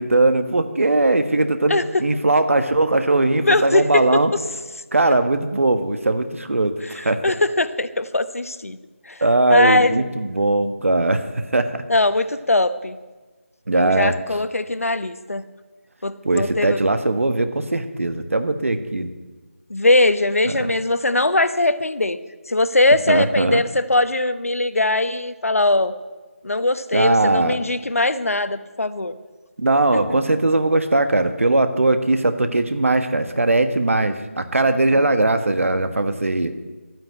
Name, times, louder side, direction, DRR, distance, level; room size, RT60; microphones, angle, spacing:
voice 1, 0.0-4.3 4.9-7.3 9.2-11.8 13.7-14.1 16.2-19.1 23.1-23.6 26.9-27.6 29.6-36.5, right 2 dB, 70° right, 9 dB, 1.4 m, -19 dB
voice 2, 3.4-4.0 6.8-8.8 9.1-9.2 9.5-10.1 11.9-13.0 13.8-15.4 16.0-16.8 19.7-22.2 22.5-25.9 26.4-29.1 29.9-30.2 34.9-35.1, left 2 dB, 85° left, 13 dB, 1.0 m, -20 dB
12.5 x 9.4 x 8.7 m, 1.3 s
figure-of-eight pair, 165°, 8 cm